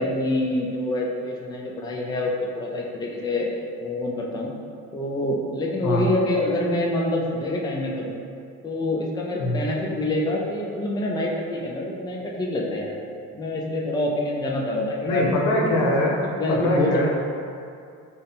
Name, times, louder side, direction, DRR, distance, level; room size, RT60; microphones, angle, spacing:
voice 1, 0.0-3.5 3.8-4.5 4.9-8.2 8.6-12.9 13.3-15.2 16.4-17.1, left 1 dB, 15° left, -2 dB, 0.5 m, -26 dB
voice 2, 15.0-17.1, left 1 dB, 80° left, -2 dB, 0.7 m, -22 dB
3.6 x 2.2 x 4.0 m, 2.4 s
supercardioid pair, 90°, 31 cm